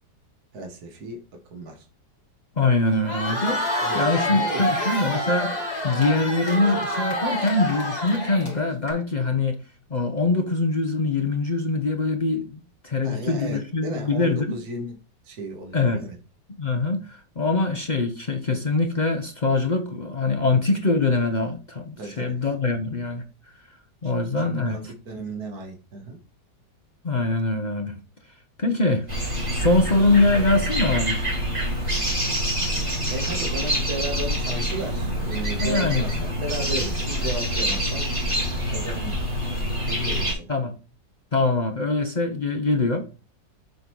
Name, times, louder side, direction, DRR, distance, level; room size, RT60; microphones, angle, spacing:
voice 1, 0.5-1.2 1.5-1.8 3.8-4.0 4.3-4.7 13.0-15.0 15.2-16.2 22.0-22.4 24.0-26.2 33.1-38.1 38.7-39.1 39.8-40.5, right 1 dB, 55° right, 2.1 m, -34 dB
voice 2, 2.6-3.6 3.9-5.5 5.8-9.6 9.9-14.6 15.7-16.0 16.5-23.2 24.0-24.8 27.0-28.0 28.6-29.1 29.5-31.2 35.6-36.1 40.5-40.7 41.3-43.1, left 3 dB, 50° left, 0.5 m, -23 dB
Crowd, 2.9-8.9, left 1 dB, 25° left, 2.3 m, -27 dB
sound 1, 29.1-40.3, equal, 15° right, 2.2 m, -26 dB
7.6 x 3.8 x 4.7 m
omnidirectional pair, 1.9 m